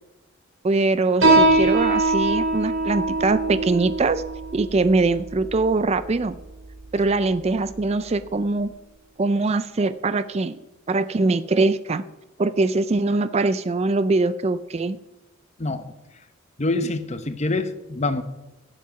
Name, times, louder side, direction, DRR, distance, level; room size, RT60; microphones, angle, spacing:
voice 1, 0.6-4.2 4.5-6.4 6.9-8.7 9.2-10.6 10.9-12.0 12.4-15.0, right 3 dB, 30° right, 14 dB, 0.4 m, -22 dB
Piano, 1.2-8.3, right 2 dB, 65° right, 4.7 m, -23 dB
voice 2, 16.6-18.2, left 2 dB, 35° left, 10 dB, 0.9 m, -25 dB
16.0 x 7.5 x 5.7 m, 0.99 s
head